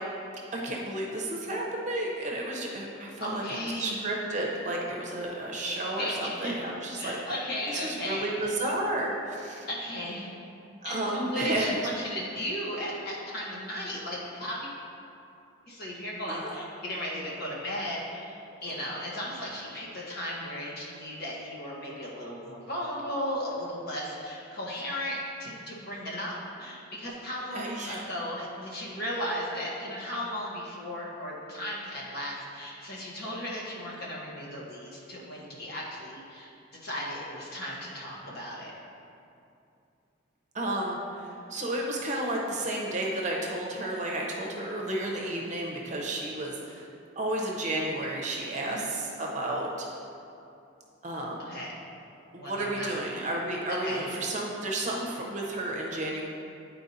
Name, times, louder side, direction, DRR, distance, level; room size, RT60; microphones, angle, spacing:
voice 1, 0.5-7.2 7.7-9.7 10.8-11.8 16.3-16.6 18.7-18.8 27.5-28.0 40.5-46.9 47.2-49.9 51.0-51.5 52.3-56.2, right 1 dB, 35° right, -2 dB, 0.7 m, -32 dB
voice 2, 3.2-4.0 6.0-6.6 7.0-8.5 9.7-10.3 10.8-14.7 15.7-36.5 36.8-38.7 48.6-48.9 51.4-51.7 52.4-52.9 53.8-54.1, equal, 50° left, -5 dB, 1.3 m, -36 dB
9.8 x 4.4 x 2.7 m, 2.7 s
head